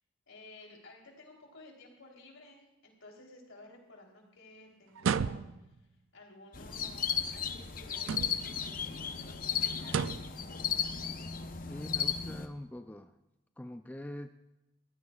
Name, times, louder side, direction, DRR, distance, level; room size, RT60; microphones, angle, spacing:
voice 1, 0.3-5.8 6.1-10.9, left 2 dB, 75° left, 0 dB, 3.5 m, -55 dB
sound 1, 5.0-5.8 8.0-8.6 9.8-10.4, right 6 dB, 75° right, 0.4 m, -33 dB
sound 2, 6.5-12.5, left 7 dB, 40° left, 0.8 m, -35 dB
voice 2, 11.7-13.2 13.6-14.3, left 1 dB, 10° left, 8 dB, 0.3 m, -43 dB
21.5 x 16.0 x 2.4 m, 0.95 s
head